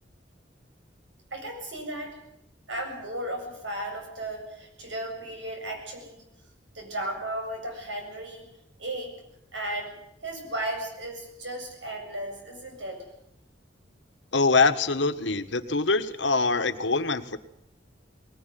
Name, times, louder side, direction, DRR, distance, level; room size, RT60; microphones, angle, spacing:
voice 1, 1.3-2.2 2.7-6.2 6.7-8.5 8.8-9.1 9.5-10.0 10.2-13.1, right 1 dB, 85° right, 3 dB, 7.7 m, -35 dB
voice 2, 14.3-17.4, left 3 dB, 75° left, 10 dB, 1.5 m, -24 dB
21.5 x 19.0 x 9.3 m, 0.80 s
head